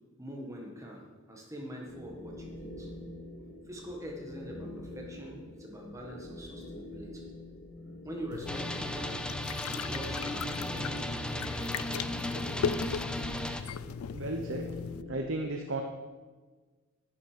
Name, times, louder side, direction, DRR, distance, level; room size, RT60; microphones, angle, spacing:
voice 1, 0.2-2.9 3.7-7.3 8.0-12.7, equal, 15° right, 0 dB, 1.6 m, -44 dB
sound 1, 1.9-15.3, left 1 dB, 40° left, 1.9 m, -45 dB
sound 2, 8.3-15.0, left 7 dB, 85° left, 0.4 m, -38 dB
sound 3, 8.5-13.6, left 1 dB, 5° left, 0.5 m, -36 dB
voice 2, 14.1-14.7 15.1-15.8, right 2 dB, 65° right, 3 dB, 0.9 m, -34 dB
11.0 x 11.0 x 5.1 m, 1.4 s
head